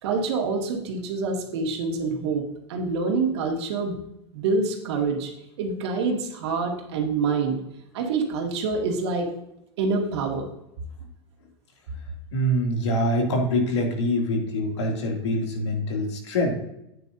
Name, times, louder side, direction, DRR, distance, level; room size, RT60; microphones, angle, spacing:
voice 1, 0.0-2.4 2.7-4.0 4.3-5.3 5.6-7.6 7.9-9.3 9.8-10.5, right 4 dB, 70° right, 2 dB, 2.2 m, -26 dB
voice 2, 12.3-16.5, left 1 dB, 90° left, 1 dB, 2.7 m, -24 dB
9.5 x 9.1 x 2.7 m, 0.83 s
supercardioid pair, 130°, 14 cm